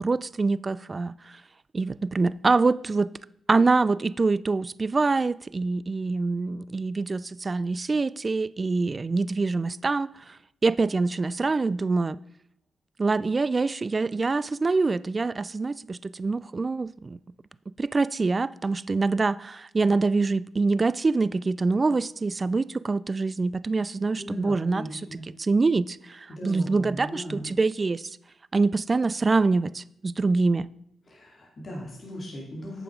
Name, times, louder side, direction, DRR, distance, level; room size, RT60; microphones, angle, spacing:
voice 1, 0.0-1.3 1.7-3.1 3.5-10.4 10.6-12.2 13.0-17.2 17.8-24.9 25.4-28.1 28.5-30.7, right 3 dB, 35° right, 0.3 m, -25 dB
voice 2, 24.2-25.2 26.3-27.5 31.1-32.8, equal, 40° left, 2.8 m, -38 dB
9.0 x 7.0 x 5.1 m
cardioid pair, 75°, 0 cm